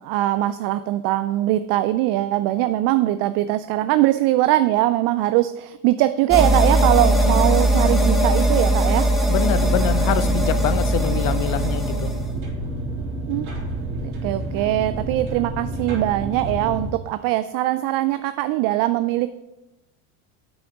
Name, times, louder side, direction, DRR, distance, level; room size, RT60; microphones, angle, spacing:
voice 1, 0.0-9.1 13.3-13.5 14.0-19.3, right 15 dB, 50° right, 12 dB, 0.5 m, -21 dB
sound 1, 6.3-12.3, right 1 dB, ahead, 1.1 m, -19 dB
voice 2, 9.3-12.1, left 11 dB, 45° left, 13 dB, 0.7 m, -25 dB
sound 2, 9.5-16.9, right 1 dB, 75° right, 3.5 m, -29 dB
8.3 x 6.1 x 5.0 m, 0.95 s
supercardioid pair, 110°, 44 cm